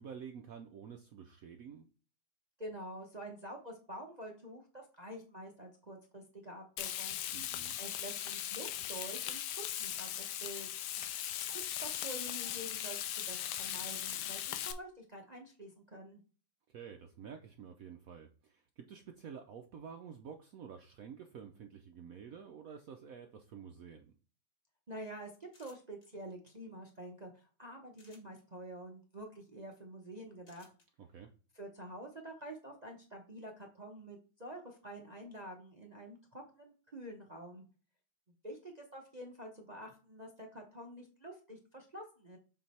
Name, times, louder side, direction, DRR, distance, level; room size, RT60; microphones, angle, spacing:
voice 1, 0.0-1.9 7.3-7.8 16.7-24.1 31.0-31.3, right 7 dB, 85° right, 5 dB, 0.7 m, -50 dB
voice 2, 2.6-7.1 7.8-9.4 9.8-10.7 11.5-16.2 24.9-30.7 31.5-37.6 38.4-42.4, right 1 dB, 45° right, 1 dB, 0.5 m, -48 dB
Frying (food), 6.8-14.7, left 11 dB, 70° left, 1.0 m, -39 dB
sound 1, 25.5-26.1 27.9-28.4 30.4-30.9, left 3 dB, 45° left, 1.8 m, -62 dB
7.2 x 3.3 x 4.2 m, 0.37 s
omnidirectional pair, 2.3 m